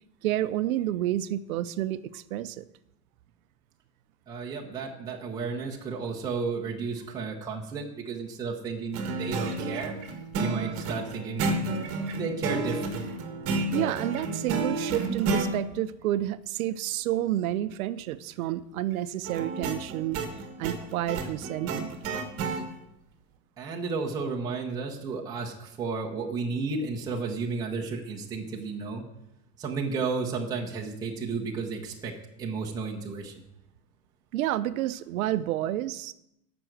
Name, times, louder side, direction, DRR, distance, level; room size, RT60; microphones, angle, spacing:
voice 1, 0.2-2.7 13.7-20.2 20.6-21.9 34.3-36.1, right 13 dB, 60° right, 14 dB, 0.7 m, -29 dB
voice 2, 4.3-9.9 10.4-11.6 11.9-13.1 23.6-29.0 29.6-33.3, right 4 dB, 10° right, -2 dB, 0.8 m, -33 dB
sound 1, 8.9-15.5 19.2-22.6, right 3 dB, 30° right, 1.6 m, -31 dB
13.5 x 6.1 x 7.8 m, 0.83 s
supercardioid pair, 170°, 49 cm